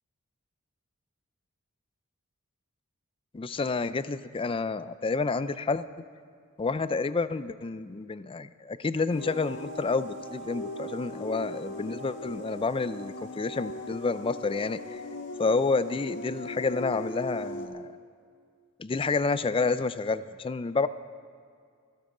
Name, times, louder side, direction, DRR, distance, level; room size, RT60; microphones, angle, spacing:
voice 1, 3.3-5.9 6.6-15.0 15.4-17.9 18.8-20.9, left 4 dB, 25° left, 14 dB, 0.4 m, -29 dB
sound 1, 9.1-17.7, left 1 dB, 60° left, 1.6 m, -39 dB
26.0 x 11.5 x 3.8 m, 2.2 s
head